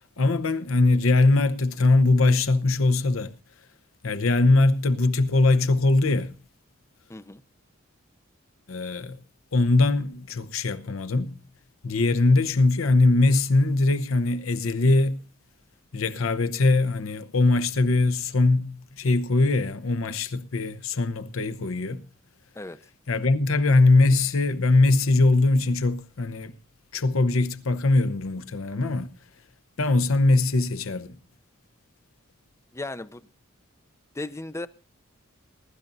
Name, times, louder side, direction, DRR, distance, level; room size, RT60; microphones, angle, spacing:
voice 1, 0.2-3.4 4.0-6.3 8.7-9.2 9.5-11.4 11.8-15.2 15.9-22.0 23.1-26.6 26.9-29.2 29.8-31.2, left 2 dB, 70° left, 0.9 m, -21 dB
voice 2, 7.1-7.4 22.5-22.8 32.7-33.3 34.1-34.7, left 2 dB, 15° left, 0.5 m, -35 dB
21.0 x 12.0 x 2.6 m
head